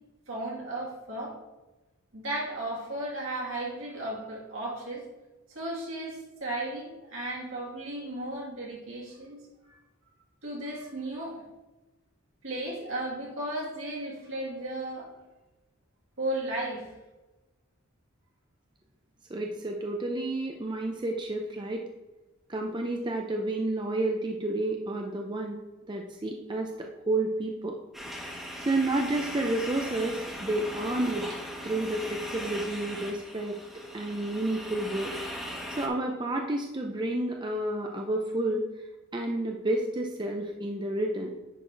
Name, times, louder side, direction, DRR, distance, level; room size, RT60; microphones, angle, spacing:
voice 1, 0.3-1.4 2.1-5.1 5.5-9.4 10.4-11.4 12.4-15.1 16.2-16.9, right 1 dB, 65° right, -3 dB, 2.4 m, -35 dB
voice 2, 19.3-21.8 22.5-25.6 25.9-27.8 28.4-31.3 31.6-33.6 33.9-35.1 35.8-38.7 39.1-41.3, right 2 dB, 20° right, 1 dB, 0.5 m, -30 dB
sound 1, 27.9-35.9, equal, ahead, 1.2 m, -39 dB
10.0 x 4.1 x 4.6 m, 1.1 s
head